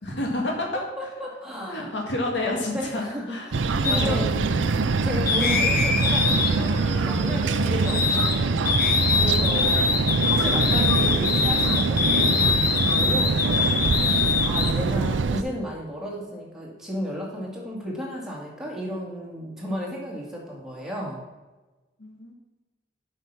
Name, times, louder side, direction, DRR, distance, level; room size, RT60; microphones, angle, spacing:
voice 1, 0.0-0.7 1.0-1.1 1.7-4.6 22.0-22.3, left 2 dB, 65° left, 0 dB, 1.9 m, -30 dB
voice 2, 0.7-1.9 2.7-4.3 5.0-9.8 10.2-12.6 12.9-14.0 14.4-21.2, equal, 5° right, -4 dB, 2.2 m, -34 dB
sound 1, 3.5-15.4, right 4 dB, 80° right, 0.5 m, -24 dB
sound 2, 3.8-4.1 5.3-8.4 8.7-14.7, left 5 dB, 50° left, 0.9 m, -24 dB
7.9 x 5.7 x 6.0 m, 1.2 s
head